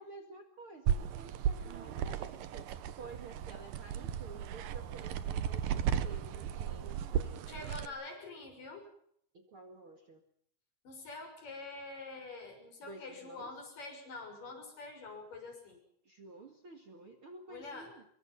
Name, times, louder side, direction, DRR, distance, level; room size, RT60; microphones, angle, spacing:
voice 1, 0.0-7.9 9.3-10.2 12.8-13.5 16.0-18.0, right 3 dB, 40° right, 5 dB, 2.2 m, -51 dB
sound 1, 0.9-7.9, right 9 dB, 70° right, 2.5 m, -35 dB
voice 2, 7.5-8.9 10.8-15.8 17.5-17.9, left 3 dB, 55° left, 4 dB, 7.9 m, -46 dB
26.0 x 23.5 x 5.6 m, 0.67 s
omnidirectional pair, 4.6 m